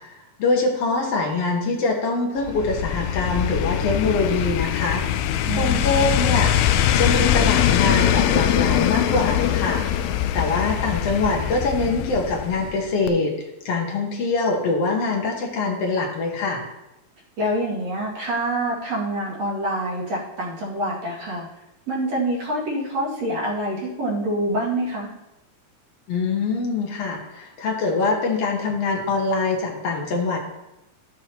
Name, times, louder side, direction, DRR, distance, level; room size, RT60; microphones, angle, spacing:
voice 1, 0.4-5.0 5.6-6.5 6.9-9.8 10.3-13.3 13.7-16.6 26.1-30.4, left 3 dB, 60° left, 0 dB, 1.9 m, -23 dB
sound 1, 2.4-12.8 13.1-13.2, left 10 dB, 85° left, 1.7 m, -22 dB
voice 2, 5.5-6.2 17.4-21.5 21.9-25.1, right 1 dB, 55° right, -5 dB, 3.2 m, -26 dB
12.5 x 7.6 x 2.9 m, 0.93 s
omnidirectional pair, 3.8 m